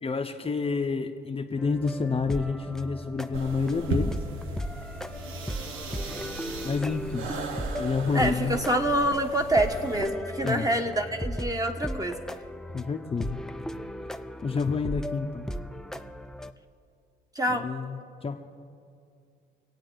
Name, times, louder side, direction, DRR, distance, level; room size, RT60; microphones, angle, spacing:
voice 1, 0.0-4.2 6.6-7.3 7.8-8.6 10.4-10.7 12.7-13.4 14.4-15.5 17.5-18.4, left 4 dB, 30° left, 4 dB, 0.8 m, -29 dB
sound 1, 1.6-16.5, equal, 5° left, 0.5 m, -37 dB
sound 2, 3.3-10.1, right 3 dB, 85° right, 1.1 m, -37 dB
voice 2, 8.1-12.2 17.3-17.7, right 1 dB, 20° right, 4 dB, 1.2 m, -26 dB
24.5 x 8.8 x 4.0 m, 2.3 s
cardioid pair, 90°, 20 cm